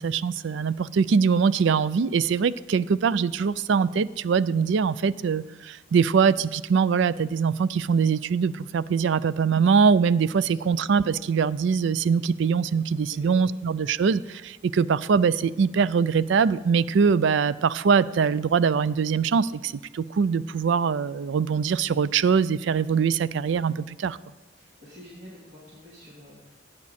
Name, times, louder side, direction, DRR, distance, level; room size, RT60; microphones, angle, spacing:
voice 1, 0.0-24.2, right 6 dB, 65° right, 18 dB, 0.4 m, -23 dB
voice 2, 13.1-13.6 24.6-26.6, left 1 dB, 40° right, -6 dB, 2.7 m, -48 dB
16.0 x 8.5 x 4.2 m, 1.2 s
head